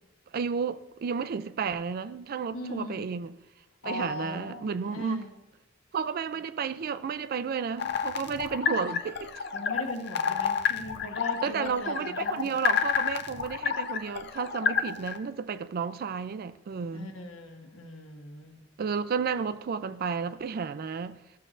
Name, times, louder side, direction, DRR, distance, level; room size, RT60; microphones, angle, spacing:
voice 1, 0.3-3.4 3.8-5.3 5.9-9.4 11.4-17.1 18.8-21.2, right 6 dB, 50° right, 0.3 m, -32 dB
voice 2, 2.5-3.1 3.8-5.3 9.5-12.6 16.9-18.6, left 2 dB, 80° left, 1.2 m, -39 dB
sound 1, 7.8-15.2, left 7 dB, 55° left, 0.5 m, -30 dB
13.5 x 6.5 x 2.5 m
head